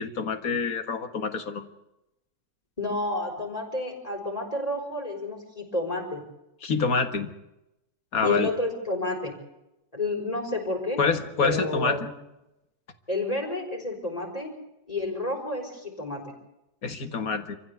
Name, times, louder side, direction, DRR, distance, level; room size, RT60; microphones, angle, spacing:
voice 1, 0.0-1.7 6.6-7.3 8.1-8.5 11.0-12.1 16.8-17.6, left 4 dB, 60° left, 9 dB, 2.2 m, -27 dB
voice 2, 2.8-6.2 8.2-9.3 9.9-11.0 11.4-12.1 13.1-14.5 14.9-16.3, left 2 dB, 20° left, 1 dB, 5.5 m, -30 dB
26.5 x 15.0 x 8.3 m, 0.91 s
omnidirectional pair, 1.8 m